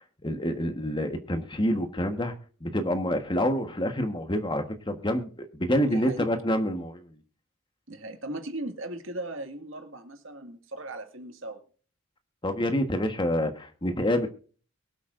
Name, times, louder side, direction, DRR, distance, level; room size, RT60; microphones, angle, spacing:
voice 1, 0.2-2.3 2.6-7.0 12.4-14.3, equal, 25° left, 7 dB, 1.3 m, -27 dB
voice 2, 5.8-6.3 7.9-11.6, right 1 dB, 70° right, 5 dB, 2.1 m, -37 dB
23.0 x 8.3 x 2.6 m, 0.40 s
head